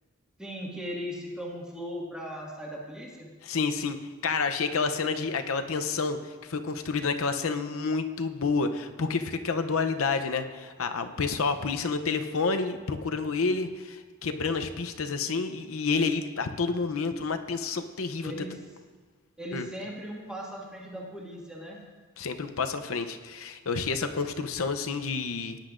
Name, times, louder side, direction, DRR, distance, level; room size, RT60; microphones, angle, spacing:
voice 1, 0.4-3.3 18.2-18.6 19.4-21.8, equal, 5° right, -4 dB, 1.8 m, -38 dB
voice 2, 3.4-4.0 4.2-18.3 19.5-19.7 22.2-25.6, left 4 dB, 75° left, 7 dB, 0.7 m, -29 dB
18.0 x 10.0 x 2.5 m, 1.5 s
head